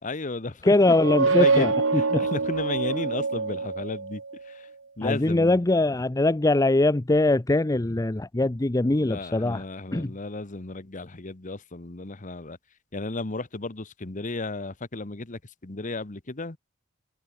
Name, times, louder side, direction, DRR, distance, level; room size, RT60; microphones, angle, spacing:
voice 1, 0.0-0.7 1.3-4.7 5.0-5.6 9.0-12.6 12.9-16.6, left 2 dB, 40° left, 1.3 m, -34 dB
voice 2, 0.6-2.2 5.0-9.6 9.9-10.1, left 2 dB, 20° left, 0.6 m, -22 dB
sound 1, 0.8-4.4, right 4 dB, 80° right, 1.4 m, -25 dB
head